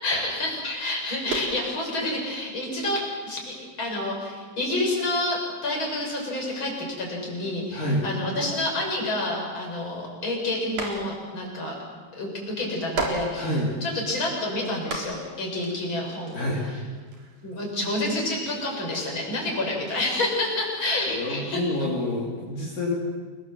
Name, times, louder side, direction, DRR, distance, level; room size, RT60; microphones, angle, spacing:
voice 1, 0.0-11.8 12.1-13.5 13.8-16.4 17.4-21.7, left 1 dB, 30° left, -2 dB, 7.5 m, -28 dB
sound 1, 1.2-1.9 2.3-3.8 4.3-4.5 4.8-5.0 5.3-5.4 5.6-9.6 10.0-11.4 11.7-11.8 12.6-14.2 14.7-19.0, right 2 dB, 50° right, 4.9 m, -37 dB
voice 2, 7.7-8.0 13.3-13.7 16.3-16.8 20.8-22.9, left 1 dB, 55° left, -4 dB, 4.9 m, -28 dB
29.0 x 21.5 x 7.8 m, 1.5 s
omnidirectional pair, 4.6 m